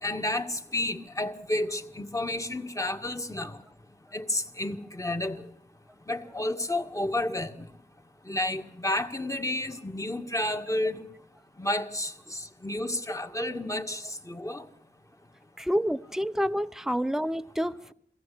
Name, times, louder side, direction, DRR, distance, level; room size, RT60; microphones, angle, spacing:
voice 1, 0.0-3.6 4.1-5.4 6.1-7.7 8.3-11.1 11.6-14.6, left 1 dB, 20° left, 1.8 m, -31 dB
voice 2, 15.6-17.9, equal, 5° right, 0.8 m, -28 dB
23.5 x 16.0 x 8.5 m
cardioid pair, 55°, 18 cm